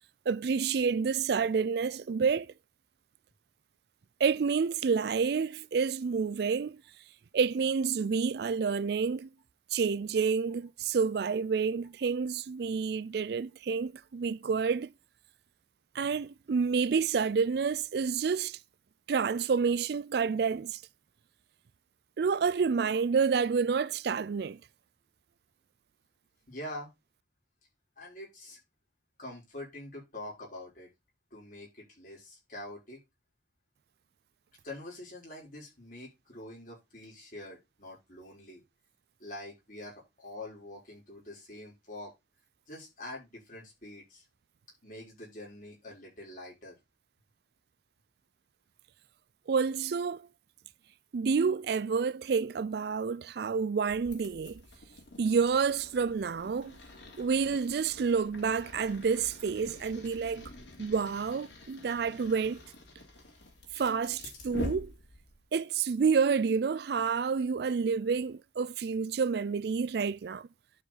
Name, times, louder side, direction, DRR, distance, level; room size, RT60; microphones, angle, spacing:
voice 1, 0.3-2.5 4.2-6.8 7.3-9.3 9.7-14.9 15.9-18.6 19.1-20.8 22.2-24.6 49.5-50.2 51.1-54.6 55.2-56.8 57.2-60.5 60.8-62.6 63.7-64.9 65.5-70.5, right 5 dB, 60° right, 0.4 m, -29 dB
voice 2, 26.5-26.9 28.0-28.6 29.2-30.9 31.3-33.0 34.6-38.6 39.2-42.1 42.7-44.2 44.8-46.8, left 1 dB, 45° left, 6.1 m, -45 dB
sound 1, 53.9-65.5, left 1 dB, 85° left, 3.2 m, -46 dB
11.5 x 5.1 x 4.0 m
head